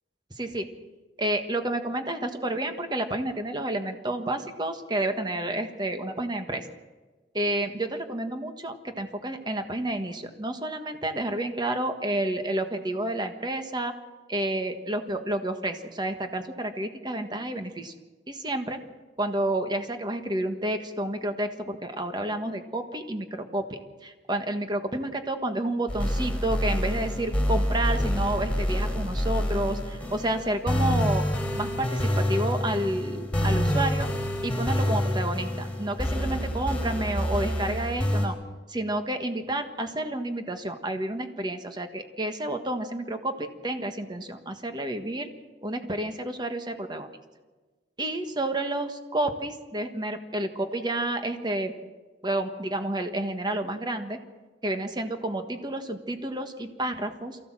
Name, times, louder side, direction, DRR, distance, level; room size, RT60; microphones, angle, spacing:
voice 1, 0.4-0.7 1.2-6.7 7.3-13.9 14.3-17.9 18.3-18.8 19.2-31.2 31.6-34.1 34.4-38.4 38.7-45.3 45.6-47.1 48.0-51.7 52.2-54.2 54.6-57.4, right 1 dB, 25° right, 7 dB, 1.5 m, -30 dB
sound 1, 25.9-38.3, equal, 5° left, 3.8 m, -27 dB
23.0 x 15.0 x 7.5 m, 1.3 s
head